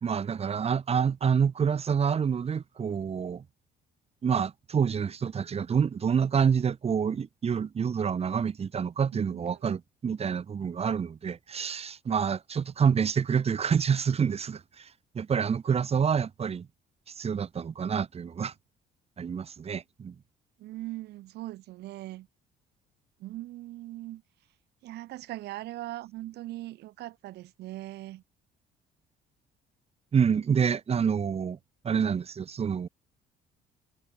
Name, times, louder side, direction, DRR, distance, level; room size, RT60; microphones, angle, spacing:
voice 1, 0.0-3.4 4.2-14.9 15.1-16.7 17.1-18.5 19.2-20.1 30.1-31.6 31.8-32.9, right 7 dB, 35° right, 2.8 m, -27 dB
voice 2, 9.1-9.6 20.6-22.3 23.2-24.2 24.8-28.2, right 16 dB, 80° right, 4.7 m, -40 dB
cardioid pair, 110°, 17 cm